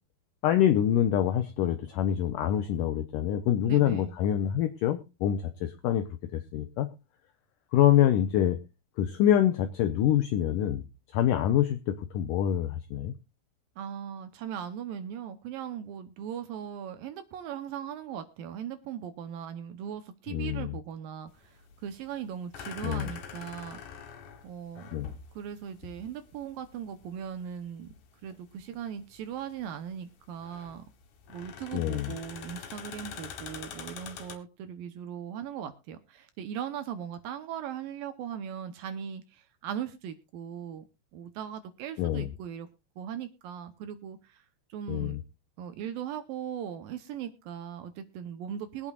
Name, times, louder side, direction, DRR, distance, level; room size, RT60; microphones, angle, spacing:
voice 1, 0.4-6.1 6.3-6.9 7.7-8.6 9.0-10.8 11.1-13.1 20.3-20.7 22.8-23.1 24.9-25.1 31.7-32.1 42.0-42.3 44.9-45.2, left 11 dB, 85° left, 8 dB, 1.8 m, -26 dB
voice 2, 3.7-4.1 13.8-24.1 24.4-24.9 25.4-27.9 28.2-30.8 31.3-40.9 41.1-42.7 43.0-44.4 44.7-45.2 45.6-48.9, right 9 dB, 75° right, 9 dB, 2.3 m, -39 dB
sound 1, 21.3-34.4, left 7 dB, 60° left, 2.7 m, -46 dB
22.5 x 8.8 x 2.4 m, 0.29 s
omnidirectional pair, 4.6 m